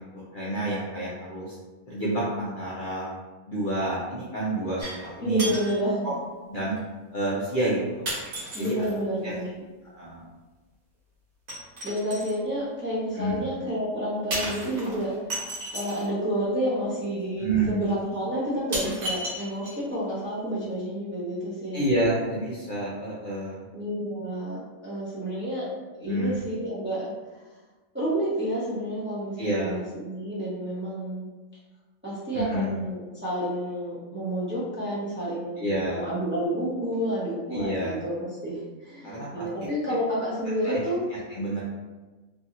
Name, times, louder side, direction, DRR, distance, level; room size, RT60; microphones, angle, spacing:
voice 1, 0.1-1.6 1.9-3.1 3.5-5.5 6.0-6.1 6.5-6.8 7.1-8.1 8.6-8.9 9.2-9.3 9.8-10.2 13.1-13.4 17.4-17.8 21.7-23.6 26.0-26.4 29.4-29.7 32.3-32.7 35.6-36.0 37.5-37.9 39.0-39.7 40.6-40.8 41.3-41.6, right 2 dB, 60° left, -7 dB, 0.5 m, -29 dB
sound 1, 4.8-5.1 5.4-5.8 6.8-6.9 8.1-9.0 11.5-12.4 14.3-16.1 17.2-17.3 17.9-18.0 18.7-20.0 20.3-20.4, right 1 dB, 70° right, 1.3 m, -33 dB
voice 2, 5.2-6.1 8.5-9.6 11.8-15.1 15.7-21.8 23.7-25.7 25.9-27.4 27.9-31.3 32.0-41.0, equal, 15° right, -8 dB, 0.4 m, -30 dB
2.8 x 2.7 x 2.5 m, 1.2 s
omnidirectional pair, 1.5 m